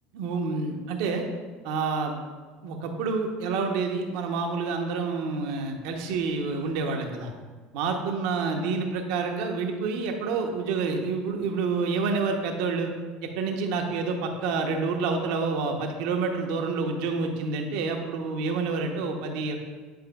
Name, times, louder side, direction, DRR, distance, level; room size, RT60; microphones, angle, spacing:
voice 1, 0.1-1.2 1.6-2.2 2.6-7.3 7.7-12.9 13.2-19.6, right 4 dB, 65° right, 3 dB, 0.8 m, -28 dB
9.3 x 4.8 x 2.3 m, 1.4 s
hypercardioid pair, 75°, 0 cm